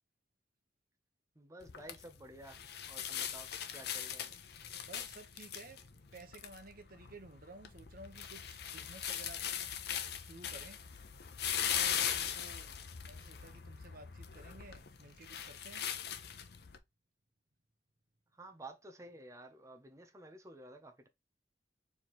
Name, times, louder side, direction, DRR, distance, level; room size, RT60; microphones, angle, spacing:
voice 1, 1.3-4.4 18.3-21.1, right 1 dB, 20° right, 0.8 m, -53 dB
sound 1, 1.6-16.8, left 9 dB, 65° left, 0.7 m, -40 dB
voice 2, 4.8-9.8 10.2-10.8 11.5-15.9, right 2 dB, 55° right, 1.1 m, -54 dB
4.6 x 3.6 x 3.0 m
head